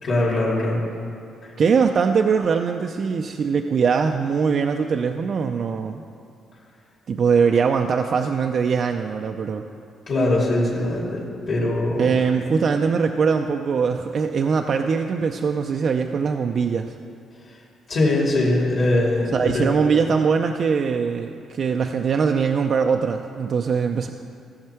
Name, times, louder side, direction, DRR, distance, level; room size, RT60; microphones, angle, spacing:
voice 1, 0.0-0.9 1.4-1.5 10.1-12.0 17.9-19.7, left 2 dB, 50° left, -6 dB, 2.6 m, -21 dB
voice 2, 1.6-6.0 7.1-9.6 12.0-16.9 19.3-24.1, right 6 dB, 50° right, 4 dB, 0.4 m, -21 dB
15.5 x 6.5 x 4.5 m, 2.6 s
cardioid pair, 110°, 0 cm